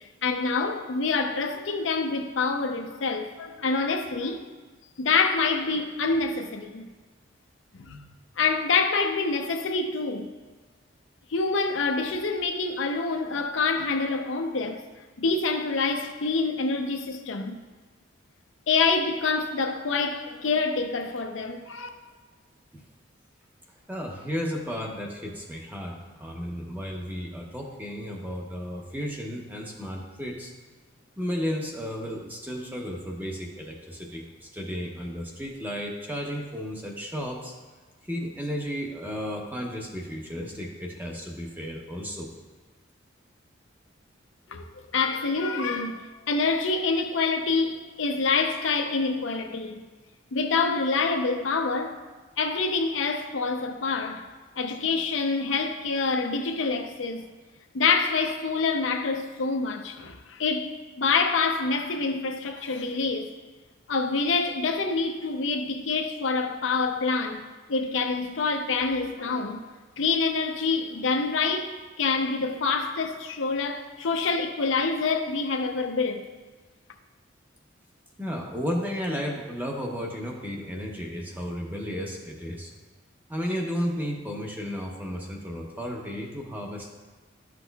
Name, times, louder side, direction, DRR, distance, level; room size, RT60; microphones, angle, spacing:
voice 1, 0.2-4.4 5.0-6.9 7.8-8.0 8.4-10.3 11.3-14.8 15.2-17.5 18.7-21.9 44.5-44.6 44.9-49.8 50.3-52.0 52.4-54.2 54.6-57.3 57.7-63.3 63.9-69.6 70.0-71.7 72.0-76.2, left 4 dB, 80° left, 0.6 m, -26 dB
voice 2, 23.9-30.5 31.2-37.5 38.0-42.3 78.2-82.7 83.3-86.9, equal, 10° right, 0.8 m, -33 dB
11.0 x 6.0 x 2.3 m
head